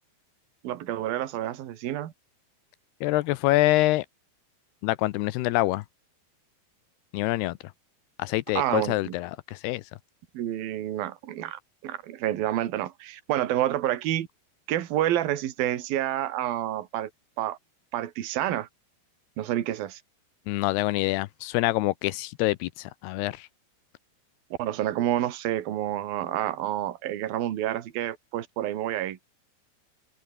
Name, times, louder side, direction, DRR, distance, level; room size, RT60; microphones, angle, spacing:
voice 1, 0.6-2.1 8.6-9.1 10.4-14.3 14.7-17.1 17.4-17.6 17.9-18.7 19.4-20.0 24.6-29.2, right 13 dB, 65° right, 3.5 m, -29 dB
voice 2, 3.0-4.1 4.8-5.8 7.1-7.6 8.2-9.8 20.5-23.5, left 18 dB, 80° left, 2.7 m, -25 dB
open air
omnidirectional pair, 4.7 m